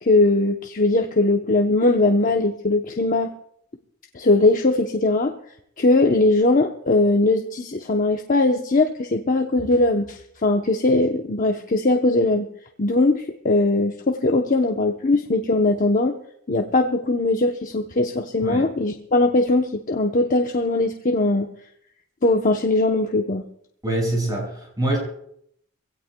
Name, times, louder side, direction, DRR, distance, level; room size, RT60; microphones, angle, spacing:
voice 1, 0.0-3.3 4.1-5.3 5.8-12.5 12.8-16.1 16.5-21.5 22.2-23.4, left 2 dB, 40° left, 4 dB, 0.8 m, -20 dB
voice 2, 23.8-25.0, right 1 dB, 20° right, -1 dB, 6.0 m, -24 dB
24.0 x 17.0 x 2.3 m, 0.70 s
head